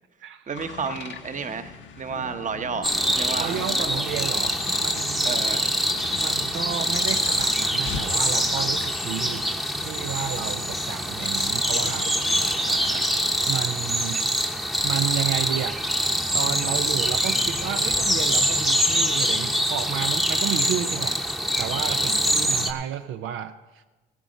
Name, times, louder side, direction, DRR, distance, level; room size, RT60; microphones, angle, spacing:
sound 1, 0.5-12.8, left 6 dB, 70° left, 1.0 m, -39 dB
voice 1, 0.5-3.6 5.2-5.7 12.6-13.2, right 6 dB, 40° right, 9 dB, 0.9 m, -32 dB
sound 2, 2.8-22.7, equal, ahead, 0.8 m, -24 dB
voice 2, 3.4-5.4 6.1-9.5 9.8-12.1 13.5-14.3 14.6-15.8 16.3-21.2 21.6-23.9, right 10 dB, 80° right, 9 dB, 0.5 m, -32 dB
15.5 x 8.2 x 5.1 m, 1.2 s
cardioid pair, 90°, 20 cm